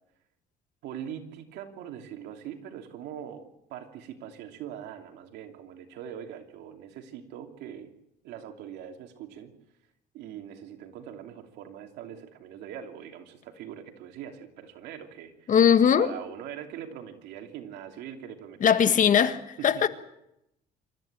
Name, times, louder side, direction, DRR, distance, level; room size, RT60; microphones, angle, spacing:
voice 1, 0.8-7.9 8.2-9.5 10.1-15.5 16.0-19.3 19.6-19.8, right 9 dB, 85° right, 2.9 m, -42 dB
voice 2, 15.5-16.1 18.6-19.3 19.6-19.9, left 8 dB, 50° left, 1.6 m, -19 dB
26.5 x 14.0 x 8.9 m
cardioid pair, 110°, 17 cm